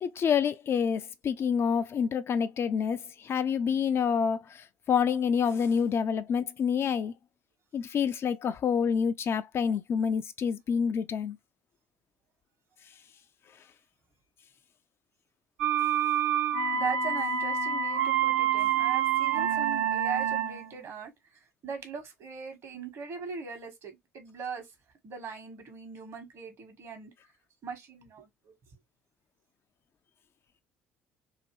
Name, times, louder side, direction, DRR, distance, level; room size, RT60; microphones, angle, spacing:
voice 1, 0.0-7.1 7.7-11.4, left 7 dB, 40° left, 0.4 m, -28 dB
sound 1, 15.6-20.7, right 8 dB, 75° right, 0.8 m, -27 dB
voice 2, 16.7-21.1 21.6-24.6 25.0-27.1 27.6-28.5, right 6 dB, 50° right, 1.3 m, -39 dB
2.8 x 2.6 x 2.9 m
figure-of-eight pair, 55°, 6 cm